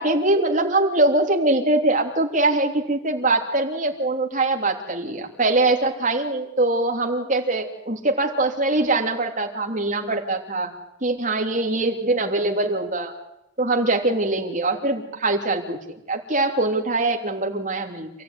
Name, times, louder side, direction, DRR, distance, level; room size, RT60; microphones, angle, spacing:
voice 1, 0.0-10.7 11.0-13.1 13.6-18.1, right 2 dB, 40° right, 1 dB, 3.3 m, -22 dB
27.5 x 16.0 x 9.7 m, 0.86 s
head